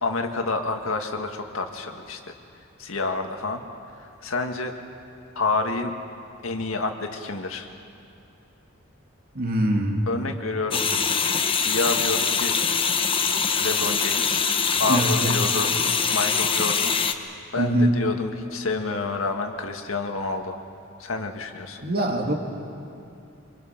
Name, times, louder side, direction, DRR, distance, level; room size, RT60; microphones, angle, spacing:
voice 1, 0.0-2.3 2.8-3.6 4.0-4.7 5.4-5.9 6.4-7.7 10.1-10.8 11.5-12.6 13.6-14.5 14.8-15.7 16.1-16.9 17.5-20.6 21.0-21.8, left 3 dB, 80° left, 4 dB, 1.8 m, -28 dB
voice 2, 9.3-10.1 14.9-15.3 17.6-17.9 21.8-22.3, right 1 dB, 50° right, 2 dB, 2.4 m, -23 dB
sound 1, 10.7-17.1, left 6 dB, 25° left, 0.9 m, -23 dB
25.5 x 23.5 x 5.9 m, 2.6 s
head